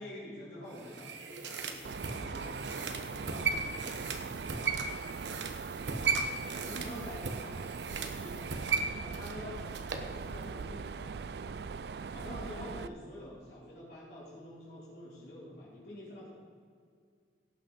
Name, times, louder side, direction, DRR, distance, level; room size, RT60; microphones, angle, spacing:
voice 1, 0.0-9.8 10.0-11.2 11.6-11.7 12.1-16.3, left 1 dB, 70° left, -9 dB, 3.8 m, -48 dB
sound 1, 0.7-10.1 10.4-10.5, right 5 dB, 90° right, 1.2 m, -36 dB
Mechanisms, 1.8-12.9, right 5 dB, 65° right, 0.4 m, -41 dB
17.0 x 6.5 x 5.7 m, 2.2 s
head